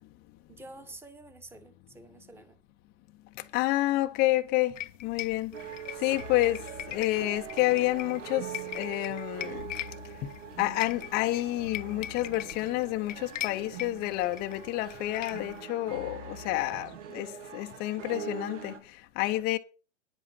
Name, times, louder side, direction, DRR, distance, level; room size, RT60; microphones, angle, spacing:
voice 1, 0.5-2.6, right 2 dB, 5° right, 1.3 m, -49 dB
voice 2, 3.4-4.8 5.0-5.6 6.0-8.5 8.7-9.7 10.2-10.3 10.6-19.6, left 17 dB, 25° left, 0.8 m, -29 dB
sound 1, 4.8-15.6, left 13 dB, 75° left, 0.9 m, -42 dB
sound 2, 5.5-18.8, right 7 dB, 70° right, 2.1 m, -43 dB
10.0 x 8.1 x 5.7 m
hypercardioid pair, 140°, 38 cm